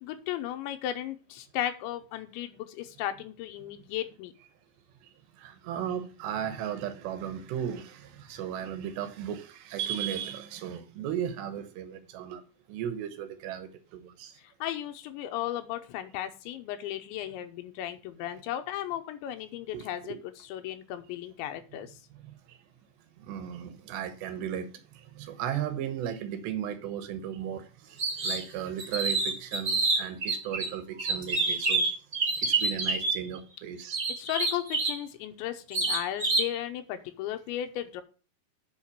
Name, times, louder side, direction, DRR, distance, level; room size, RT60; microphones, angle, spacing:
voice 1, 0.0-4.3 14.6-21.9 34.2-38.0, left 12 dB, 85° left, 3.3 m, -35 dB
voice 2, 5.4-12.4 12.7-14.3 19.7-20.2 23.3-24.7 25.2-27.6 28.2-31.8 32.4-34.0, right 9 dB, 75° right, 3.1 m, -35 dB
sound 1, 28.0-28.4 28.8-30.7 31.0-33.2 33.9-35.0 35.7-36.5, right 3 dB, 25° right, 2.0 m, -27 dB
7.7 x 5.7 x 6.9 m
omnidirectional pair, 5.1 m